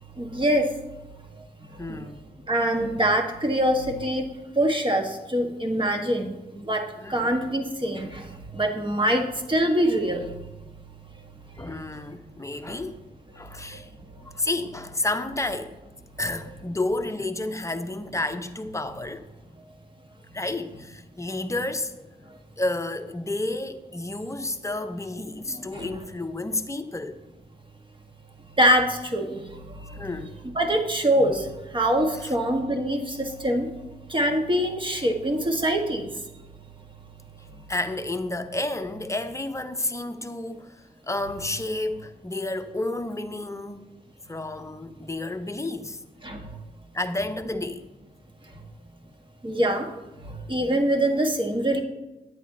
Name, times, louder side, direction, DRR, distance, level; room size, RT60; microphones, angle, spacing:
voice 1, 0.2-0.7 1.9-2.0 2.5-4.2 4.6-8.3 8.5-10.3 25.7-25.9 28.6-29.4 29.8-30.0 30.4-31.5 31.7-33.7 34.1-36.1 46.2-46.4 49.4-49.9 50.2-51.8, right 1 dB, 30° right, 1.4 m, -24 dB
voice 2, 1.8-2.2 7.0-7.3 10.6-10.7 11.6-13.0 13.4-13.9 14.3-15.8 16.2-19.2 20.3-21.9 22.6-27.2 30.0-30.3 32.2-32.3 37.7-40.7 41.0-43.9 44.3-46.0 46.9-47.8 49.0-49.1, left 2 dB, 15° left, 0.8 m, -31 dB
10.5 x 8.3 x 2.8 m
cardioid pair, 50°, 17 cm